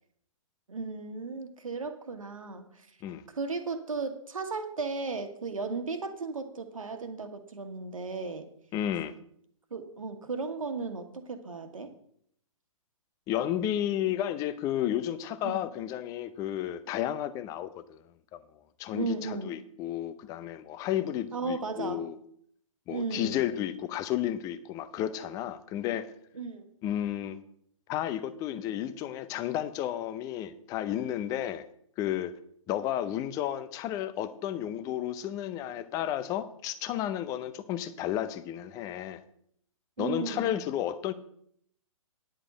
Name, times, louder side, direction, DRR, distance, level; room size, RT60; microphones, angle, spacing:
voice 1, 0.7-2.9 3.3-8.5 9.7-11.9 15.4-15.6 18.9-19.5 21.3-22.0 22.9-23.4 26.3-26.7 40.0-40.6, right 4 dB, 75° right, 1.5 m, -35 dB
voice 2, 8.7-9.1 13.3-18.0 18.8-22.2 22.9-26.1 26.8-27.4 27.9-31.6 32.0-32.3 32.7-39.2 40.0-41.1, left 11 dB, 20° left, 0.6 m, -32 dB
9.9 x 4.9 x 7.8 m
figure-of-eight pair, 130°, 18 cm